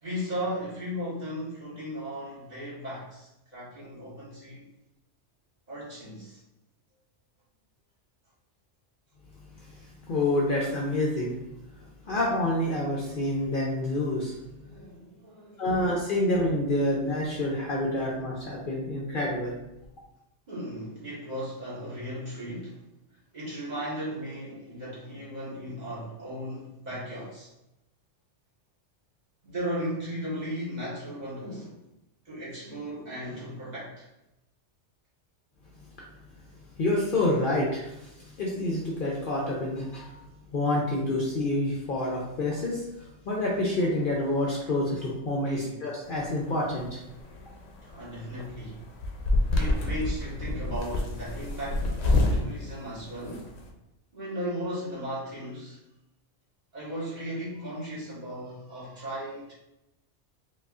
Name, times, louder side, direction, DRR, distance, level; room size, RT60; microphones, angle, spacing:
voice 1, 0.0-4.6 5.7-6.4 11.8-11.9 14.6-15.7 20.5-27.5 29.4-31.8 32.2-34.1 45.4-45.9 46.6-46.7 47.8-48.8 49.5-53.5 54.1-55.8 56.7-59.5, equal, 35° right, -8 dB, 1.4 m, -36 dB
voice 2, 10.1-11.3 12.0-14.4 15.6-19.5 36.8-40.2 40.5-47.0, left 1 dB, 55° left, -3 dB, 0.7 m, -28 dB
sound 1, 46.0-53.7, left 2 dB, 90° left, 1.0 m, -28 dB
4.7 x 2.3 x 2.4 m, 0.89 s
omnidirectional pair, 1.2 m